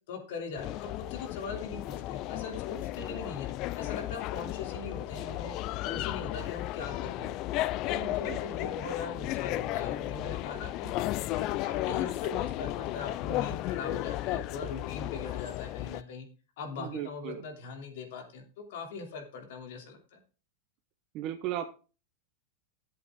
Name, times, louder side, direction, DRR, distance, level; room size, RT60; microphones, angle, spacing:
voice 1, 0.1-3.5 3.7-5.5 5.8-7.3 7.9-10.9 11.3-16.3 16.6-20.2, left 4 dB, 60° left, 4 dB, 2.9 m, -41 dB
sound 1, 0.6-16.0, left 15 dB, 35° left, 0.4 m, -34 dB
voice 2, 16.8-17.4 21.1-21.6, right 12 dB, 35° right, 8 dB, 0.9 m, -36 dB
11.5 x 7.9 x 3.7 m, 0.34 s
supercardioid pair, 160°, 0 cm